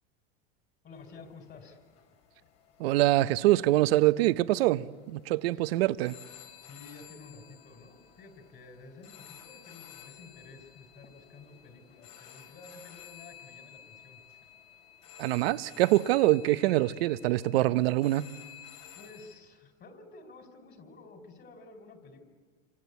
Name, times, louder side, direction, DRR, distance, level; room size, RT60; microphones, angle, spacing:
voice 1, 0.8-1.8 5.5-5.6 6.6-14.2 18.9-22.3, left 3 dB, 35° left, 4.6 m, -51 dB
sound 1, 0.9-19.3, left 9 dB, 60° left, 5.5 m, -53 dB
voice 2, 2.8-6.2 15.2-18.3, right 16 dB, 80° right, 0.9 m, -24 dB
27.0 x 26.0 x 8.3 m
supercardioid pair, 115°, 30 cm